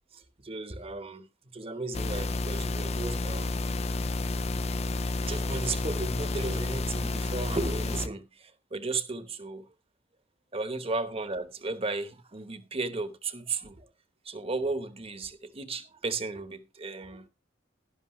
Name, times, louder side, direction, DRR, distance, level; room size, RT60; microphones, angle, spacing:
voice 1, 0.1-1.3 1.5-3.6 5.2-9.7 10.5-13.9 14.2-17.3, right 3 dB, 30° right, 1.1 m, -35 dB
sound 1, 1.9-8.1, left 2 dB, 35° left, 0.5 m, -30 dB
12.0 x 11.5 x 3.1 m
head